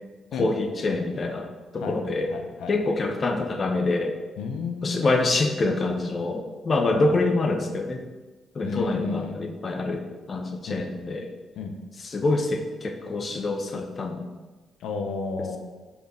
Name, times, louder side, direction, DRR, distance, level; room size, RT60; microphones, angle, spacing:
voice 1, 0.4-2.3 2.7-4.1 4.8-8.0 8.5-11.3 12.1-14.2, left 2 dB, 45° left, 4 dB, 1.0 m, -26 dB
voice 2, 2.3-2.9 4.4-5.0 6.9-7.2 8.6-9.4 10.7-11.1 11.6-11.7 14.8-15.6, left 5 dB, 75° left, 5 dB, 0.7 m, -32 dB
5.1 x 5.0 x 4.9 m, 1.2 s
supercardioid pair, 50°, 0 cm